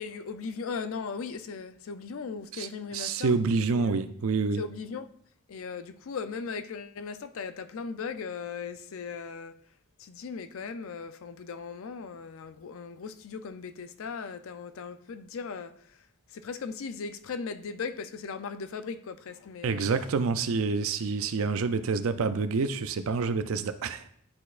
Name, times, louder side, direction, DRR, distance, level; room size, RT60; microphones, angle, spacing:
voice 1, 0.0-3.4 3.7-4.0 4.6-5.1 5.5-9.6 10.0-15.7 16.3-19.9, left 5 dB, 65° left, 0.4 m, -38 dB
voice 2, 2.5-4.6 19.6-24.1, right 4 dB, 65° right, 0.4 m, -28 dB
10.5 x 4.2 x 2.5 m
head